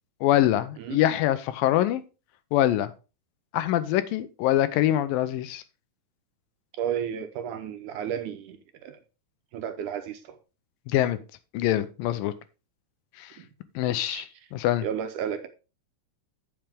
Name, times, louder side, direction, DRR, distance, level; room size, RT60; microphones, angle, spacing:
voice 1, 0.2-2.0 2.5-2.9 3.5-5.6 10.9-11.2 11.5-12.3 13.2-13.3 13.8-14.9, left 13 dB, 85° left, 2.5 m, -24 dB
voice 2, 6.8-8.6 8.8-9.0 9.5-10.4 13.4-13.5 14.1-14.2 14.8-15.5, right 9 dB, 70° right, 2.2 m, -32 dB
8.7 x 7.3 x 3.5 m
omnidirectional pair, 4.0 m